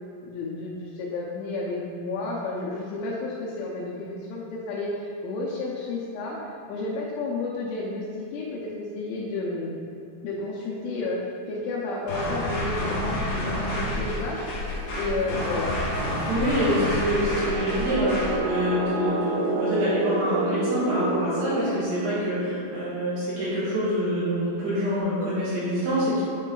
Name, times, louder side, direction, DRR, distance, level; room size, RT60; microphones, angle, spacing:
voice 1, 0.2-9.7 10.2-14.5 15.0-15.7, left 2 dB, 80° left, -5 dB, 2.8 m, -31 dB
sound 1, 12.1-18.4, left 1 dB, 65° left, 2.5 m, -29 dB
sound 2, 12.4-22.9, right 3 dB, 85° right, 2.5 m, -31 dB
voice 2, 16.3-26.2, equal, 65° right, -10 dB, 3.0 m, -26 dB
8.9 x 3.2 x 3.8 m, 2.6 s
omnidirectional pair, 5.9 m